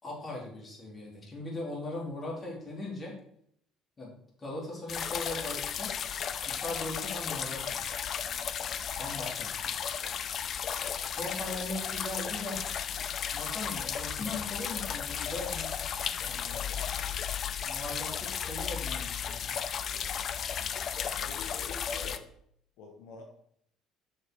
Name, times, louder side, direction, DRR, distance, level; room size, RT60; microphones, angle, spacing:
voice 1, 0.0-3.1 4.0-4.1 4.4-5.9 6.6-7.8 9.0-9.7 10.7-12.6 13.3-15.7 16.3-16.6 17.6-19.6, left 2 dB, 30° left, -3 dB, 3.7 m, -39 dB
sound 1, 4.9-22.2, left 8 dB, 50° left, 0.6 m, -34 dB
voice 2, 21.1-22.3 22.8-23.2, left 4 dB, 75° left, 2 dB, 1.3 m, -46 dB
7.0 x 6.4 x 4.7 m, 0.69 s
supercardioid pair, 100°, 0 cm